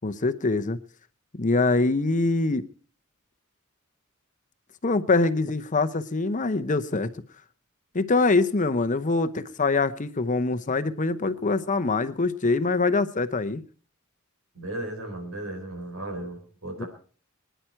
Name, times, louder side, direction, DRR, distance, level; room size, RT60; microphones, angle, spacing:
voice 1, 0.0-0.8 1.4-2.7 4.8-7.1 7.9-13.6 16.8-16.9, left 3 dB, 35° left, 12 dB, 0.8 m, -24 dB
voice 2, 14.5-16.9, right 1 dB, 90° right, 4 dB, 4.8 m, -35 dB
24.5 x 10.5 x 4.5 m, 0.41 s
head